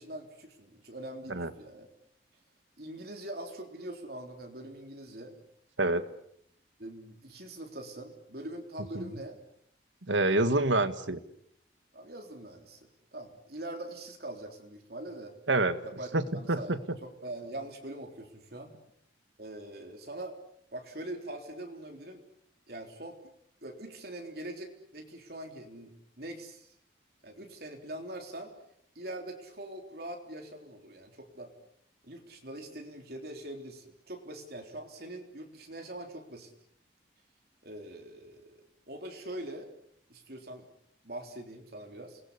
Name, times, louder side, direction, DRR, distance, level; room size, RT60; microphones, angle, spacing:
voice 1, 0.0-1.9 2.8-5.4 6.8-9.4 11.9-15.3 15.8-16.1 16.3-16.8 17.0-18.8 19.4-20.4 20.7-22.2 22.7-23.2 23.6-26.7 27.2-28.5 29.0-31.5 32.0-36.5 37.6-39.7 40.1-40.7 41.0-42.2, right 1 dB, 55° right, 3 dB, 3.7 m, -43 dB
voice 2, 10.1-11.2 15.5-15.8 16.1-17.0, right 2 dB, 85° right, 12 dB, 1.8 m, -27 dB
29.0 x 21.0 x 8.4 m, 0.69 s
head